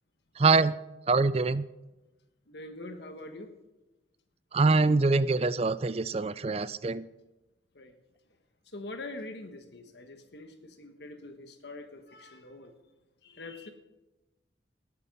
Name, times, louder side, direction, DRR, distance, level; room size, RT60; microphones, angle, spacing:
voice 1, 0.4-0.8 1.1-1.7 4.5-7.1, right 3 dB, 30° right, 16 dB, 0.4 m, -24 dB
voice 2, 2.5-3.5 7.7-7.9 8.7-12.7 13.2-13.7, left 2 dB, 65° left, 6 dB, 1.4 m, -44 dB
18.5 x 8.3 x 5.4 m, 1.0 s
head